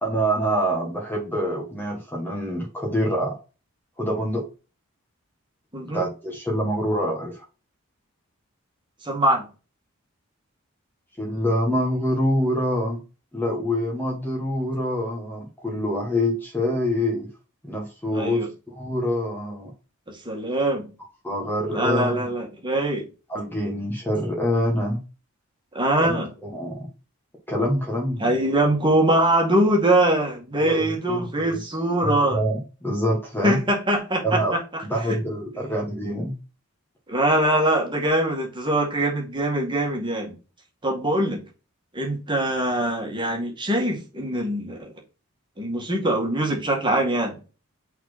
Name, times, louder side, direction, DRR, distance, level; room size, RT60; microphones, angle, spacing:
voice 1, 0.0-3.4 4.0-4.5 5.9-7.4 11.2-13.0 13.3-17.3 17.6-19.7 21.2-22.2 23.3-25.0 26.0-26.9 27.5-28.4 30.6-31.7 32.0-33.6 34.2-34.5 34.9-36.3, equal, 10° left, 1.6 m, -26 dB
voice 2, 9.0-9.5 18.1-18.5 20.1-20.9 21.7-23.0 25.7-26.3 28.2-32.4 33.4-34.6 37.1-40.3 40.8-41.4 41.9-44.9 45.6-47.4, right 1 dB, 20° right, 2.1 m, -23 dB
6.0 x 4.2 x 4.2 m
head